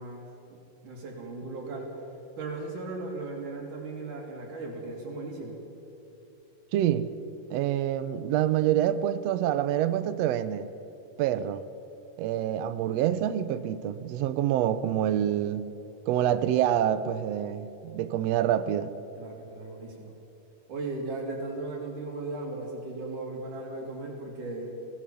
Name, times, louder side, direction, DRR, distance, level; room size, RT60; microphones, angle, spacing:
voice 1, 0.0-2.0 2.4-5.6 19.2-20.2 20.7-24.8, right 2 dB, 65° right, 4.6 m, -37 dB
voice 2, 6.7-7.1 7.5-10.7 11.2-11.6 12.2-15.7 16.1-18.9, right 11 dB, 80° right, 1.5 m, -26 dB
23.0 x 17.0 x 7.1 m
omnidirectional pair, 3.9 m